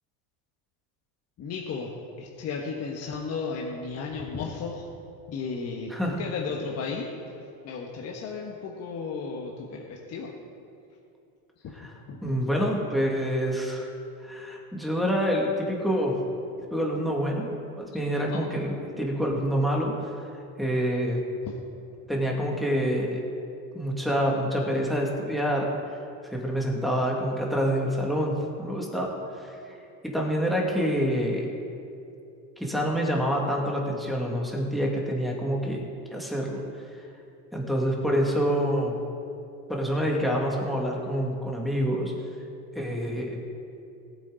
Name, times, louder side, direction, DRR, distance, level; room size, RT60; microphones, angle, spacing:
voice 1, 1.4-1.9 2.2-4.8 5.3-5.9 6.2-7.1 7.6-10.3 12.1-12.2 18.3-18.4, left 5 dB, 35° left, 0 dB, 1.2 m, -34 dB
voice 2, 5.9-6.2 11.7-11.9 12.2-13.9 14.2-16.2 16.7-17.5 17.8-19.9 20.6-21.2 22.1-23.2 23.7-25.7 26.3-29.1 30.0-31.5 32.6-35.8 36.1-36.6 37.5-38.9 39.7-42.1 42.7-43.4, equal, ahead, -2 dB, 2.1 m, -27 dB
19.0 x 8.6 x 3.9 m, 2.7 s
supercardioid pair, 130°, 43 cm